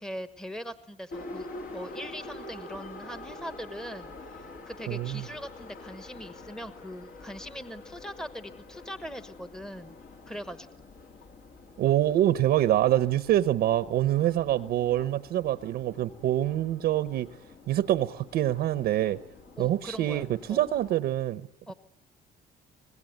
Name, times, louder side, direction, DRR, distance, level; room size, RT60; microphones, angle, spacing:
voice 1, 0.0-1.5 1.7-10.0 10.3-10.7 19.6-20.7 21.7-21.8, equal, 5° left, 1.2 m, -41 dB
Subway metro underground, 1.1-20.9, left 2 dB, 55° left, 2.8 m, -46 dB
voice 2, 4.9-5.2 11.8-17.3 17.7-19.2 19.6-21.5, right 13 dB, 70° right, 0.9 m, -25 dB
25.0 x 20.0 x 9.3 m
cardioid pair, 110°, 17 cm